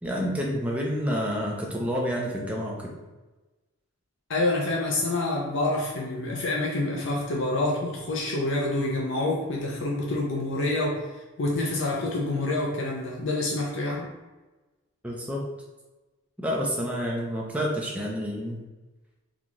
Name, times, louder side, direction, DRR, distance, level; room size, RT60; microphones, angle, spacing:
voice 1, 0.0-2.9 15.0-15.5 16.4-18.6, equal, 5° right, -2 dB, 0.5 m, -29 dB
voice 2, 4.3-11.0 11.4-14.1, left 2 dB, 55° left, -2 dB, 0.5 m, -27 dB
3.9 x 2.3 x 3.0 m, 1.2 s
head